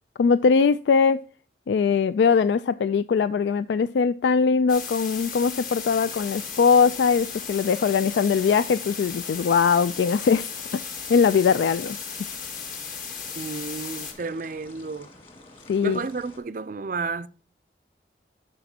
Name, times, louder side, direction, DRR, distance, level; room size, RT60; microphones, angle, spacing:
voice 1, 0.2-1.2 1.7-10.5 11.1-12.0 15.7-16.0, left 5 dB, 75° left, 0.3 m, -21 dB
sound 1, 4.7-14.1, left 6 dB, 50° left, 1.7 m, -36 dB
sound 2, 5.8-16.4, left 2 dB, 30° left, 2.0 m, -49 dB
voice 2, 13.4-15.1 15.8-17.3, right 4 dB, 45° right, 0.4 m, -32 dB
13.0 x 5.1 x 2.8 m
head